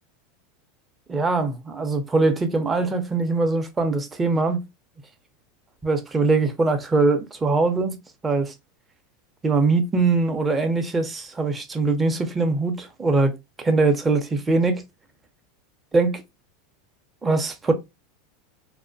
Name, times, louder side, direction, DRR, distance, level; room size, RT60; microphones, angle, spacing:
voice 1, 1.1-4.6 5.8-8.0 8.2-8.5 9.4-13.3 13.6-14.8 15.9-16.2 17.2-17.7, right 3 dB, 15° right, 0.5 m, -22 dB
2.4 x 2.1 x 2.5 m
supercardioid pair, 115°, 0 cm